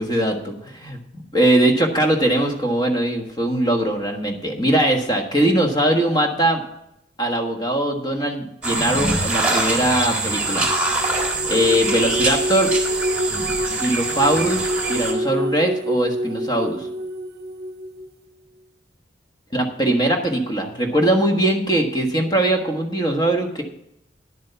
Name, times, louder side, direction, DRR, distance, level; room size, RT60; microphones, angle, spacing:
voice 1, 0.0-6.6 7.2-10.7 11.4-12.7 13.7-16.9 19.5-23.6, right 1 dB, 25° left, 3 dB, 1.4 m, -21 dB
sound 1, 8.6-15.1, right 2 dB, 5° right, 1.9 m, -24 dB
sound 2, 10.2-18.1, equal, 55° right, 0.8 m, -27 dB
10.5 x 7.5 x 5.7 m, 0.80 s
head